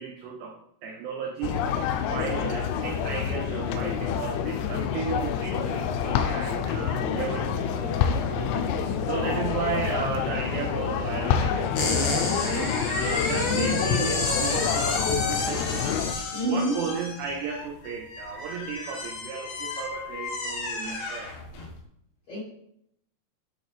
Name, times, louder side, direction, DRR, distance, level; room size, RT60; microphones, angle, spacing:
voice 1, 0.0-1.6 2.1-8.5 9.0-15.9 16.4-21.3, right 6 dB, 90° right, 3 dB, 2.4 m, -34 dB
sound 1, 1.4-16.1, left 8 dB, 85° left, 3.0 m, -28 dB
sound 2, 6.7-12.2, right 3 dB, 65° right, 2.6 m, -43 dB
sound 3, 11.7-21.7, left 3 dB, 65° left, 2.3 m, -30 dB
voice 2, 13.5-13.8 16.3-16.8 22.3-22.4, left 1 dB, 50° left, -9 dB, 2.1 m, -27 dB
7.9 x 6.4 x 3.3 m, 0.74 s
omnidirectional pair, 5.8 m